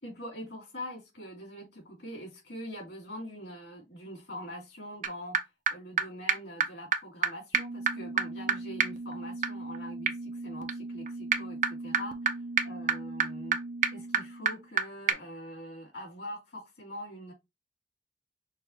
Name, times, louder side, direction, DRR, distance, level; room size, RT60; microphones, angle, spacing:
voice 1, 0.0-5.4 5.7-13.6 13.9-17.3, equal, 70° left, 2.9 m, -43 dB
sound 1, 5.0-5.1 5.3-5.4 5.7-5.8 6.0-6.1 6.3-6.4 6.6-6.7 6.9-7.0 7.2-7.3 7.5-14.8 15.1-15.2, right 6 dB, 45° right, 0.5 m, -30 dB
6.3 x 2.4 x 2.9 m
head